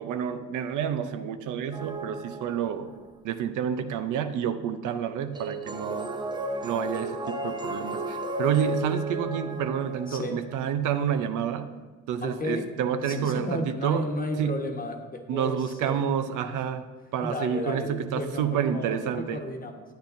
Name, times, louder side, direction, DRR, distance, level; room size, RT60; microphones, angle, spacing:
voice 1, 0.0-2.9 3.2-6.1 6.6-11.7 12.1-14.1 14.4-14.6 15.3-16.9 17.1-19.4, right 8 dB, 85° right, 9 dB, 0.6 m, -29 dB
sound 1, 1.7-3.0 5.3-10.6, right 1 dB, 15° right, 0.6 m, -34 dB
voice 2, 10.1-10.4 12.2-12.7 13.0-16.1 17.2-19.8, left 1 dB, 30° left, 3 dB, 1.1 m, -33 dB
9.4 x 8.7 x 2.6 m, 1.3 s
cardioid pair, 90°, 30 cm